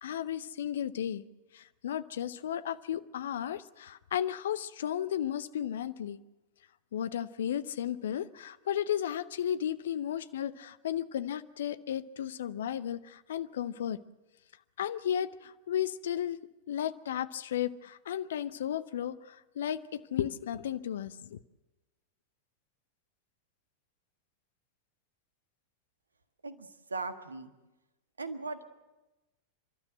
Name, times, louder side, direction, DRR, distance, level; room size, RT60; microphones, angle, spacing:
voice 1, 0.0-1.2 1.5-6.2 6.9-14.0 14.8-16.4 16.7-21.4, left 10 dB, 60° left, 15 dB, 0.6 m, -34 dB
voice 2, 26.4-27.5 28.2-28.7, right 3 dB, 75° right, 9 dB, 1.5 m, -38 dB
30.0 x 12.5 x 7.9 m, 1.1 s
figure-of-eight pair, 90°, 0 cm